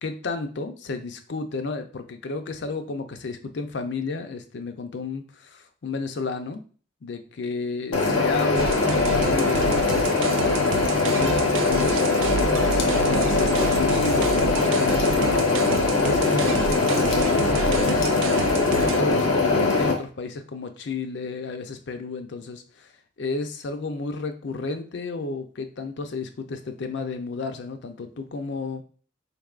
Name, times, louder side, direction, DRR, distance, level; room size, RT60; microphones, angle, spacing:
voice 1, 0.0-6.6 7.0-18.4 18.6-22.9 23.2-28.8, left 3 dB, 60° left, 7 dB, 0.5 m, -32 dB
sound 1, 7.9-19.9, left 3 dB, 80° left, 0.9 m, -21 dB
sound 2, 8.6-19.0, right 6 dB, 80° right, 0.3 m, -31 dB
4.3 x 3.3 x 2.4 m, 0.41 s
head